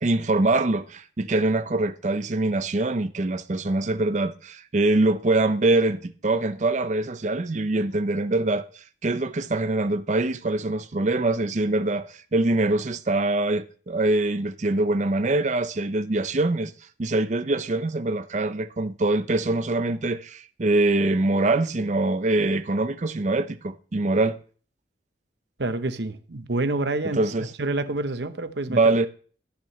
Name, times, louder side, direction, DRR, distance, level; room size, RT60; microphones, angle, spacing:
voice 1, 0.0-8.7 9.0-16.7 17.0-24.4 27.1-27.5 28.7-29.1, right 2 dB, 40° right, 0.6 m, -24 dB
voice 2, 25.6-27.2 27.6-28.9, right 2 dB, 65° right, 0.9 m, -27 dB
14.5 x 8.5 x 3.2 m
head